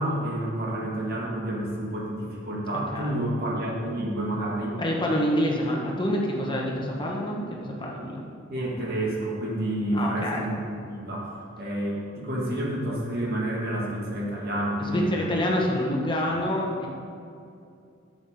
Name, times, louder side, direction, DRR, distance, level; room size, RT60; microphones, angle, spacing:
voice 1, 0.0-4.8 8.5-15.3 16.3-16.4, right 1 dB, 50° right, -3 dB, 2.1 m, -29 dB
voice 2, 4.8-8.2 9.9-10.5 14.8-16.9, equal, 25° left, -2 dB, 1.3 m, -27 dB
11.0 x 7.6 x 3.8 m, 2.5 s
head